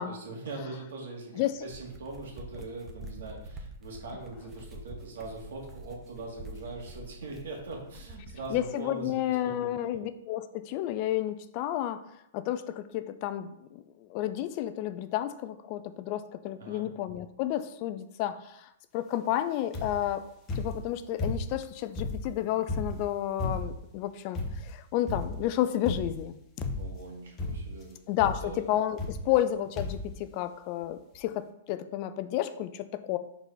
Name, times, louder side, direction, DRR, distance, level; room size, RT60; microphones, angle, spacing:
voice 1, 0.0-9.7 16.6-16.9 26.8-28.0 28.4-28.7 29.2-29.3, right 3 dB, 75° right, -1 dB, 2.1 m, -41 dB
sound 1, 1.5-8.7, right 1 dB, 20° right, 0.9 m, -46 dB
voice 2, 8.5-12.0 12.3-20.3 20.6-26.4 28.1-33.2, left 12 dB, 45° left, 11 dB, 0.4 m, -31 dB
sound 2, 19.7-20.1 20.5-21.6 21.9-23.9 24.3-24.8 25.1-25.5 25.9-26.3 26.6-27.1 27.4-27.8 28.2-28.5 29.0-29.5 29.8-30.1 30.8-30.9 31.1-31.2, left 2 dB, 25° left, 1.0 m, -34 dB
4.6 x 4.1 x 5.3 m, 0.78 s
hypercardioid pair, 130°, 0 cm